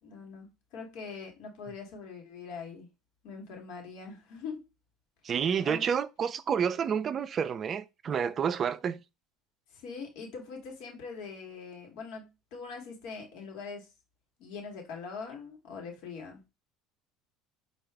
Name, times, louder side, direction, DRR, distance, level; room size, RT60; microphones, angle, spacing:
voice 1, 0.0-2.9 3.2-4.7 5.6-5.9 9.7-13.9 14.4-16.4, left 5 dB, 70° left, 1.2 m, -42 dB
voice 2, 5.2-9.0, right 7 dB, 40° right, 0.3 m, -29 dB
4.6 x 2.4 x 3.3 m
supercardioid pair, 100°, 0 cm